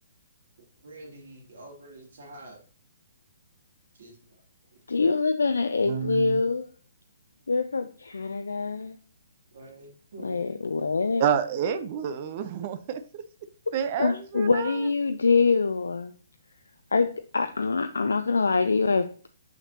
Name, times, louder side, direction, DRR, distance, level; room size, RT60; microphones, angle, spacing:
voice 1, 0.8-2.6 4.0-4.2 9.5-10.4, right 1 dB, 60° right, -1 dB, 2.7 m, -46 dB
voice 2, 4.9-6.7 7.5-9.0 10.2-11.2 13.7-16.1 16.9-19.3, left 4 dB, 75° left, 8 dB, 0.4 m, -25 dB
voice 3, 5.9-6.4 11.2-13.2 13.7-14.9, right 8 dB, 40° right, 12 dB, 0.5 m, -29 dB
6.5 x 5.9 x 2.8 m, 0.41 s
figure-of-eight pair, 130°, 0 cm